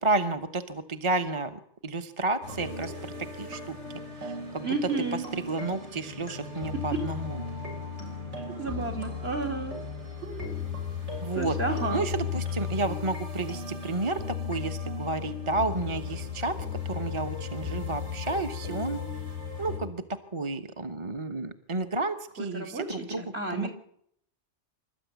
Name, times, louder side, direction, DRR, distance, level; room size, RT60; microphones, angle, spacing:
voice 1, 0.0-2.9 3.2-3.8 4.2-4.7 5.3-7.4 11.2-11.6 11.9-16.6 16.8-19.0 19.6-20.0 20.3-23.2 23.5-23.7, right 3 dB, 25° right, 8 dB, 1.1 m, -31 dB
sound 1, 2.4-19.8, left 6 dB, 75° right, 7.0 m, -36 dB
voice 2, 4.6-5.2 6.9-7.0 8.3-9.7 10.2-10.6 11.3-12.1 22.4-23.7, right 3 dB, 60° right, 3 dB, 4.4 m, -32 dB
26.5 x 13.0 x 9.4 m, 0.69 s
omnidirectional pair, 1.2 m